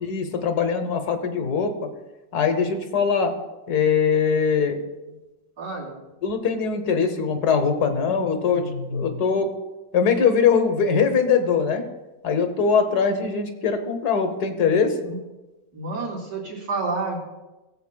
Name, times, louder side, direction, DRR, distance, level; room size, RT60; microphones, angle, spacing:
voice 1, 0.0-1.7 2.3-3.3 3.7-4.8 6.2-9.5 9.9-11.8 12.2-14.9, left 6 dB, 60° left, 7 dB, 1.5 m, -22 dB
voice 2, 5.6-5.9 15.0-15.2 15.7-17.2, right 3 dB, 60° right, -2 dB, 3.3 m, -29 dB
19.5 x 7.8 x 2.2 m, 1.1 s
omnidirectional pair, 1.9 m